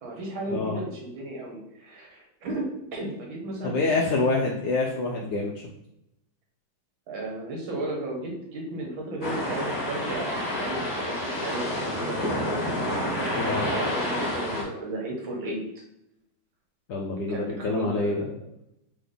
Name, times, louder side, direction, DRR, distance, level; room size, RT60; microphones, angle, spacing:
voice 1, 0.0-4.0 7.1-15.6 17.3-18.3, right 2 dB, 70° right, -1 dB, 1.9 m, -34 dB
voice 2, 3.6-5.5 13.4-13.7 16.9-18.3, left 3 dB, 85° left, -1 dB, 0.9 m, -26 dB
sound 1, 9.2-14.6, left 1 dB, 30° left, 1.4 m, -29 dB
3.8 x 3.4 x 3.8 m, 0.80 s
omnidirectional pair, 2.4 m